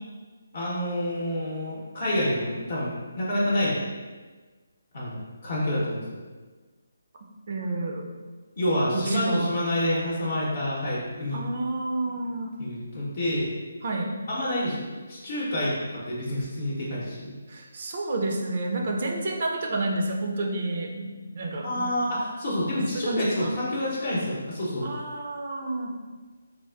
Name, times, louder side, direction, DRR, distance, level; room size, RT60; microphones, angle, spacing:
voice 1, 0.5-3.8 4.9-6.2 8.6-11.4 12.0-13.5 14.3-17.3 21.5-24.9, left 1 dB, 50° left, -6 dB, 0.7 m, -28 dB
voice 2, 7.5-8.2 8.9-9.6 11.3-12.5 13.8-14.2 17.5-21.9 22.9-23.6 24.8-25.9, right 2 dB, 50° right, 1 dB, 0.4 m, -30 dB
3.4 x 2.4 x 2.3 m, 1.4 s
figure-of-eight pair, 155°, 0 cm